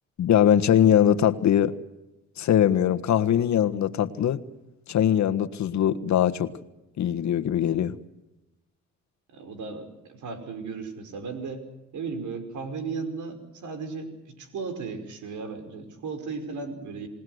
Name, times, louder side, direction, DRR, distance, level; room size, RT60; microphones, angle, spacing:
voice 1, 0.2-1.7 2.4-4.4 4.9-6.5 7.0-7.9, left 10 dB, 65° left, 9 dB, 1.5 m, -21 dB
voice 2, 9.3-11.6 11.9-17.1, right 4 dB, 75° right, 8 dB, 5.4 m, -35 dB
28.0 x 19.0 x 8.0 m, 0.95 s
cardioid pair, 90°, 30 cm